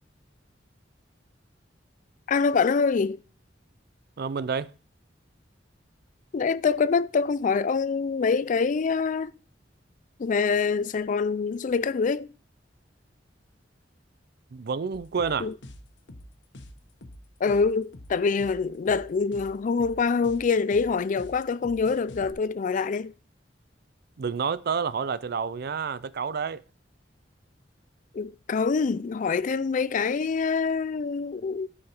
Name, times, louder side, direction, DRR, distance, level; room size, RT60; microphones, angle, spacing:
voice 1, 2.3-3.2 6.3-9.3 10.2-12.3 15.4-15.5 17.4-23.1 28.1-31.7, left 5 dB, 45° left, 0.4 m, -25 dB
voice 2, 4.2-4.7 14.5-15.5 24.2-26.6, right 6 dB, 60° right, 0.5 m, -29 dB
sound 1, 14.9-22.3, left 1 dB, 80° left, 1.1 m, -46 dB
13.0 x 5.6 x 4.4 m
head